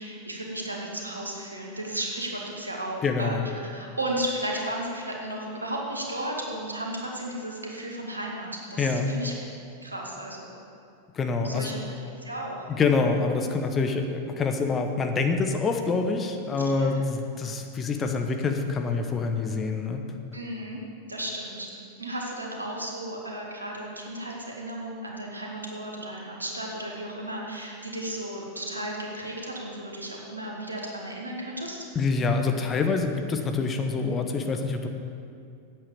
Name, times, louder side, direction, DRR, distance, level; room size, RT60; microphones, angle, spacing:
voice 1, 0.0-9.3 9.8-10.5 11.4-11.8 12.2-12.7 16.6-16.9 20.3-20.8 21.1-31.9, right 1 dB, 80° right, -1 dB, 1.9 m, -34 dB
voice 2, 3.0-3.4 8.8-9.1 11.1-11.7 12.7-20.0 31.9-34.9, left 4 dB, 25° left, 5 dB, 1.0 m, -26 dB
8.7 x 8.3 x 6.9 m, 2.5 s
figure-of-eight pair, 90°, 0 cm